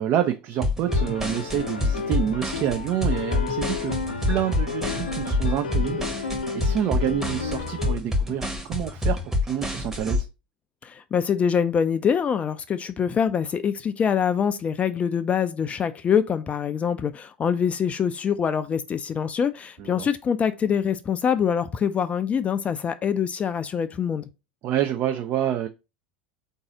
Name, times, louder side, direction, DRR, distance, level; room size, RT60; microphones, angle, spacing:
voice 1, 0.0-4.0 4.3-10.3 19.8-20.1 24.6-25.7, right 10 dB, 45° right, 0.5 m, -28 dB
sound 1, 0.6-10.2, left 2 dB, 10° right, 1.0 m, -26 dB
sound 2, 0.9-8.0, left 5 dB, 80° left, 0.6 m, -32 dB
voice 2, 10.8-24.3, left 7 dB, 25° left, 0.4 m, -24 dB
3.8 x 2.7 x 4.8 m
figure-of-eight pair, 80°, 5 cm